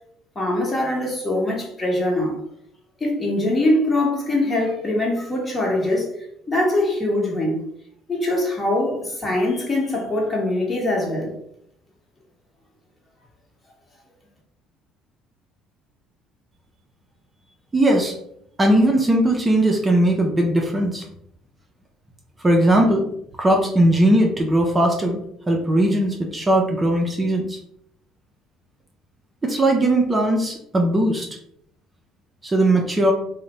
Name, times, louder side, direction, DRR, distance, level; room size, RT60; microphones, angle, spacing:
voice 1, 0.3-2.4 3.0-6.1 6.5-7.6 8.1-11.3, left 1 dB, 30° left, -1 dB, 1.0 m, -22 dB
voice 2, 17.7-18.1 18.6-21.0 22.4-23.0 23.4-25.2 25.5-27.6 29.4-31.3 32.4-33.1, right 1 dB, 20° right, 0 dB, 0.5 m, -19 dB
2.5 x 2.1 x 3.0 m, 0.73 s
hypercardioid pair, 65°, 0 cm